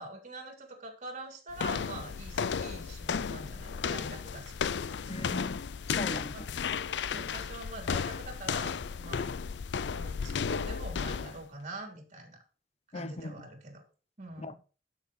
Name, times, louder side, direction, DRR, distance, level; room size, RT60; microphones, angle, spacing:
voice 1, 0.0-5.3 6.3-6.4 7.1-9.3 9.9-12.4 12.9-13.8 14.2-14.6, right 2 dB, 45° right, 3.6 m, -45 dB
sound 1, 1.5-11.4, left 6 dB, 80° left, 0.5 m, -34 dB
voice 2, 5.1-5.6 5.9-6.5 12.9-13.4 14.4-14.5, left 2 dB, 35° left, 0.8 m, -38 dB
12.0 x 6.6 x 4.3 m
head